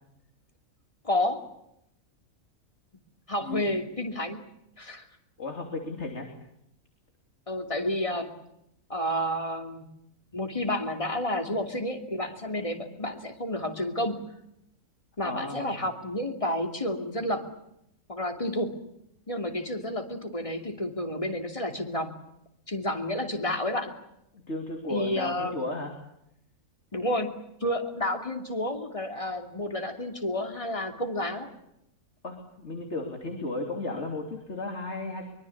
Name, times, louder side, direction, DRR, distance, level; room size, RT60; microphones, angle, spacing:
voice 1, 1.0-1.4 3.3-4.4 4.8-5.0 7.5-8.3 8.9-9.9 10.3-14.2 15.2-17.4 18.1-18.7 19.3-22.1 22.7-23.9 24.9-25.6 26.9-31.5, left 1 dB, 25° left, 5 dB, 2.8 m, -30 dB
voice 2, 3.4-3.7 5.4-6.3 15.2-15.8 24.3-25.9 32.2-35.2, left 2 dB, 50° left, 3 dB, 3.4 m, -34 dB
24.0 x 24.0 x 8.6 m, 0.79 s
omnidirectional pair, 1.5 m